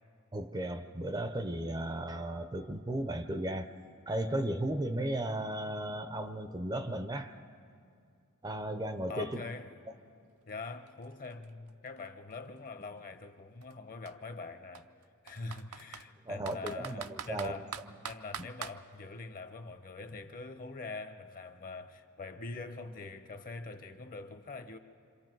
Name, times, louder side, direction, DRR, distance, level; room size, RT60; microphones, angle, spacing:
voice 1, 0.3-3.7 4.1-7.4 8.4-9.4 16.2-17.9, right 1 dB, 20° right, 0.6 m, -35 dB
voice 2, 9.1-9.7 10.5-14.9 15.2-17.7 18.0-24.8, left 3 dB, 40° left, 1.0 m, -44 dB
Computer keyboard, 10.5-10.6 10.9-12.8 13.6-13.7 14.1-14.2 14.7-16.1 16.5-18.8, right 8 dB, 70° right, 0.6 m, -43 dB
27.0 x 26.0 x 4.6 m
head